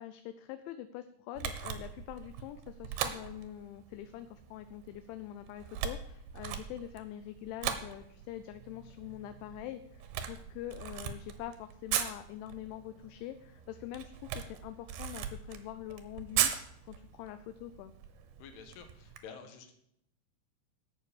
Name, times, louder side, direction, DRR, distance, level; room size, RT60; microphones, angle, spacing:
voice 1, 0.0-16.5 16.9-17.9, left 12 dB, 80° left, 11 dB, 2.9 m, -44 dB
Camera, 1.3-19.2, right 9 dB, 75° right, 2.5 m, -39 dB
voice 2, 18.4-19.7, left 6 dB, 65° left, 6 dB, 3.2 m, -49 dB
11.5 x 7.8 x 6.9 m, 0.75 s
omnidirectional pair, 5.5 m